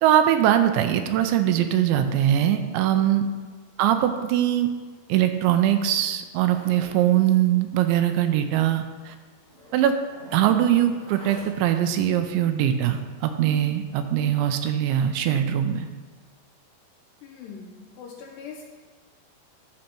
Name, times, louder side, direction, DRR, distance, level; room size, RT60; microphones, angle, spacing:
voice 1, 0.0-3.2 3.8-4.7 5.1-9.2 9.7-9.9 10.3-15.9, right 11 dB, 80° right, 7 dB, 2.8 m, -22 dB
Zipper (clothing), 6.5-7.0 7.3-7.5 7.8-7.9 8.2-8.3 9.1-9.2 9.5-11.8, equal, 20° right, 1.6 m, -44 dB
voice 2, 17.2-18.7, left 6 dB, 80° left, 1 dB, 2.6 m, -42 dB
11.5 x 6.4 x 4.4 m, 1.4 s
omnidirectional pair, 5.4 m